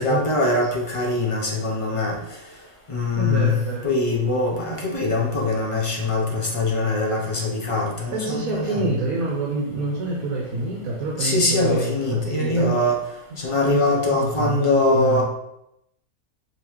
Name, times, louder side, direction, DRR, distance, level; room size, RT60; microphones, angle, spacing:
voice 1, 0.0-2.2 2.9-8.8 11.1-13.0 13.4-15.2, left 2 dB, 30° left, -2 dB, 0.6 m, -22 dB
voice 2, 3.1-3.9 8.1-12.7 13.3-13.4 13.6-15.2, right 2 dB, 70° right, -2 dB, 1.3 m, -27 dB
5.4 x 3.0 x 3.1 m, 0.83 s
omnidirectional pair, 1.6 m